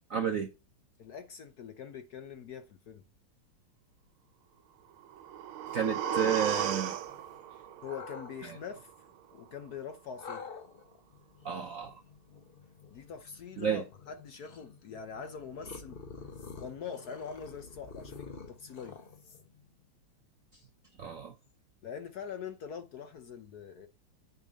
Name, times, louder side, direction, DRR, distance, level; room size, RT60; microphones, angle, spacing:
voice 1, 0.1-0.5 5.7-6.9 11.4-12.0 13.6-13.8 21.0-21.3, right 8 dB, 60° right, 0.9 m, -31 dB
voice 2, 1.0-3.0 7.5-8.9 9.3-10.4 12.9-16.0 16.6-19.0 21.8-23.9, left 7 dB, 60° left, 1.1 m, -43 dB
sound 1, 5.0-9.0 9.3-9.4, right 11 dB, 80° right, 1.6 m, -36 dB
sound 2, 5.7-7.4 7.8-8.3 10.2-19.7, left 4 dB, 40° left, 0.8 m, -48 dB
8.4 x 6.9 x 4.0 m
omnidirectional pair, 2.3 m